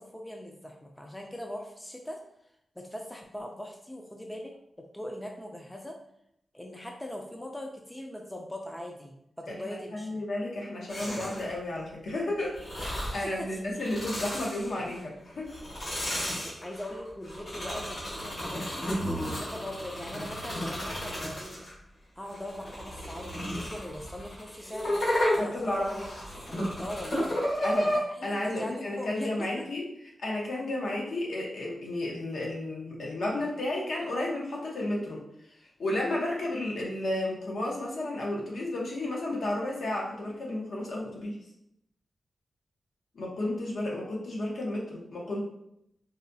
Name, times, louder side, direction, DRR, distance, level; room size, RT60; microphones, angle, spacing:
voice 1, 0.0-2.2 2.8-4.5 4.9-6.0 6.5-10.2 13.2-13.5 16.4-18.9 19.4-21.7 22.2-24.9 25.3-26.0 26.5-27.6 27.9-29.5, left 1 dB, 10° left, 1 dB, 0.3 m, -40 dB
voice 2, 9.9-15.5 25.4-26.1 27.6-27.9 28.2-29.8 30.2-35.2 35.8-41.4 43.1-45.4, left 1 dB, 75° left, -3 dB, 0.9 m, -32 dB
sound 1, 10.9-11.6 12.5-13.3 13.7-15.0 15.5-21.7 22.3-28.0, equal, 60° left, 1.3 m, -32 dB
4.0 x 2.2 x 2.6 m, 0.78 s
wide cardioid pair, 160°, 0 cm